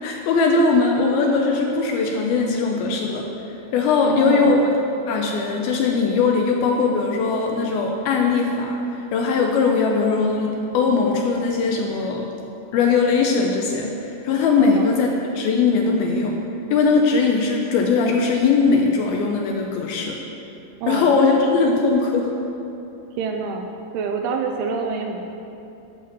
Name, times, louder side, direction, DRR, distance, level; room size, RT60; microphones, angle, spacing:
voice 1, 0.0-3.3 3.7-4.7 5.1-12.3 12.7-15.1 15.3-16.4 16.7-20.2 20.9-22.3, left 4 dB, 85° left, 1 dB, 2.3 m, -20 dB
voice 2, 4.0-4.6 14.6-14.9 20.8-21.1 23.2-23.7 23.9-25.3, right 5 dB, 80° right, 3 dB, 2.4 m, -26 dB
11.0 x 4.3 x 7.2 m, 2.8 s
omnidirectional pair, 4.8 m